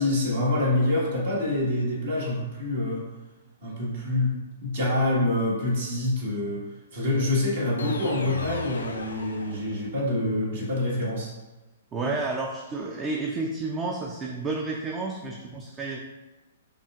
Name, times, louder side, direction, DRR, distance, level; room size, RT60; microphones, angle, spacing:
voice 1, 0.0-3.0 3.6-6.7 6.9-11.3 15.2-15.3, left 1 dB, 65° right, -5 dB, 1.4 m, -26 dB
sound 1, 7.8-10.1, left 3 dB, 80° left, 0.4 m, -35 dB
voice 2, 11.9-16.0, right 3 dB, 20° right, 0 dB, 0.4 m, -31 dB
5.4 x 2.5 x 2.4 m, 1.1 s
hypercardioid pair, 120°, 0 cm